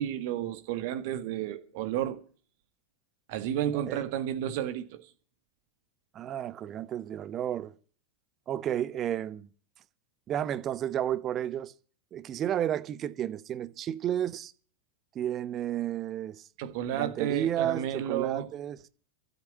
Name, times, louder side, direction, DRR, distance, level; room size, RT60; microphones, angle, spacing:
voice 1, 0.0-2.2 3.3-5.0 16.6-18.5, right 11 dB, 50° right, 1.6 m, -31 dB
voice 2, 6.1-7.7 8.5-9.5 10.3-11.7 12.1-14.5 15.1-16.5 16.9-18.8, right 11 dB, 30° right, 0.9 m, -32 dB
13.0 x 8.4 x 8.8 m
figure-of-eight pair, 90°, 0 cm